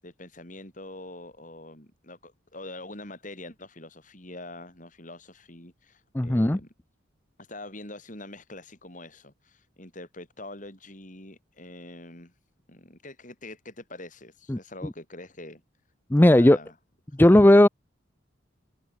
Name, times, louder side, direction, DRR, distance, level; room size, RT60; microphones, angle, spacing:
voice 1, 0.0-6.7 7.4-12.3 12.7-15.6 16.2-16.7 17.2-17.4, left 2 dB, 40° left, 7.8 m, -44 dB
voice 2, 6.1-6.6 14.5-14.6 16.1-16.6 17.2-17.7, left 1 dB, 10° left, 0.5 m, -16 dB
head